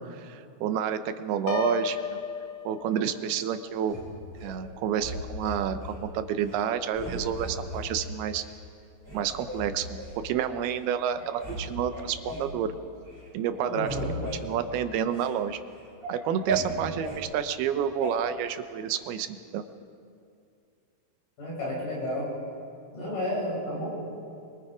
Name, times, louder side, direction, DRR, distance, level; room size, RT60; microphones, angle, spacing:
voice 1, 0.1-2.0 2.6-4.0 4.4-8.4 9.1-12.7 13.3-14.0 14.4-15.6 16.1-19.3 19.5-19.6, right 9 dB, 80° right, 10 dB, 2.8 m, -29 dB
Piano, 1.5-3.4, left 6 dB, 75° left, 2.9 m, -32 dB
sound 1, 3.9-4.5 5.0-6.0 6.4-6.6 6.9-7.9 8.4-8.5 9.0-10.2 10.8-10.9 11.2-11.6 11.9-12.5 13.0-13.3 13.5-15.3 15.7-17.2 18.0-18.1, right 2 dB, 5° left, 6.4 m, -36 dB
voice 2, 13.7-14.2 21.4-22.3 22.9-24.0, left 1 dB, 55° left, -5 dB, 8.6 m, -31 dB
25.5 x 22.5 x 5.0 m, 2.4 s
omnidirectional pair, 4.5 m